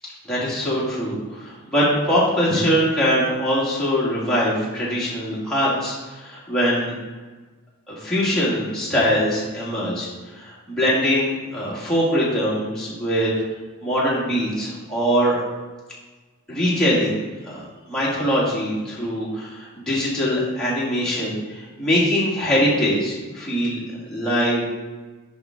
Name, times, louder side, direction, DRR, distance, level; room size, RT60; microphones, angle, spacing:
voice 1, 0.3-6.9 7.9-13.3 13.8-15.4 16.5-17.2 17.4-17.6 17.9-23.8 24.0-24.6, equal, 5° left, -9 dB, 2.1 m, -22 dB
7.1 x 5.4 x 3.6 m, 1.3 s
head